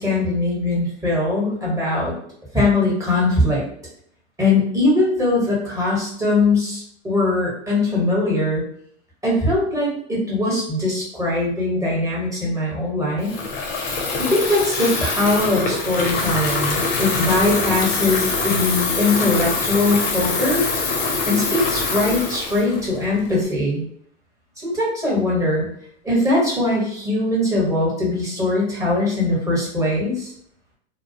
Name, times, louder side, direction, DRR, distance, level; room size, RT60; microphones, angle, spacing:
voice 1, 0.0-2.1 2.5-3.6 4.4-8.6 9.2-13.3 14.2-20.6 21.3-23.8 24.6-25.6 26.0-30.3, left 2 dB, 10° right, -5 dB, 1.1 m, -21 dB
Water tap faucet / Fill (with liquid), 13.2-23.5, left 4 dB, 40° left, 0.6 m, -24 dB
2.2 x 2.0 x 2.7 m, 0.65 s
hypercardioid pair, 110°, 34 cm